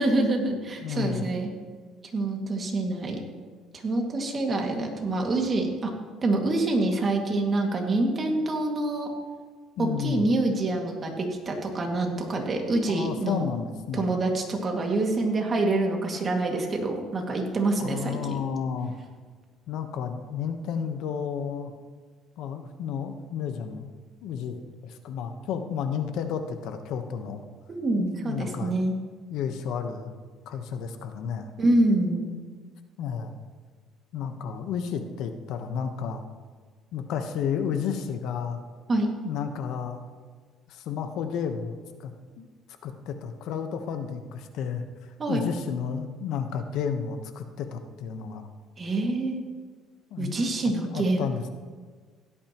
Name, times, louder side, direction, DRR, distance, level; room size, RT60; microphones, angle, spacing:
voice 1, 0.0-1.5 2.1-3.2 3.7-5.9 6.2-9.1 9.8-13.5 13.9-18.4 27.7-28.9 31.6-32.3 38.9-39.1 45.2-45.5 48.8-49.4 50.2-51.2, right 2 dB, 30° right, 1 dB, 2.1 m, -26 dB
voice 2, 0.8-1.3 9.8-10.3 12.9-14.1 17.8-18.9 19.7-21.7 22.4-23.9 24.2-27.4 28.0-28.7 29.3-30.2 30.5-31.5 33.0-33.4 34.1-36.2 36.9-38.6 39.2-40.0 40.7-42.1 42.4-42.5 42.8-44.8 45.3-48.5 50.1-50.4 50.9-51.5, left 7 dB, 70° left, 7 dB, 1.1 m, -32 dB
16.5 x 12.5 x 3.0 m, 1.5 s
cardioid pair, 125°, 0 cm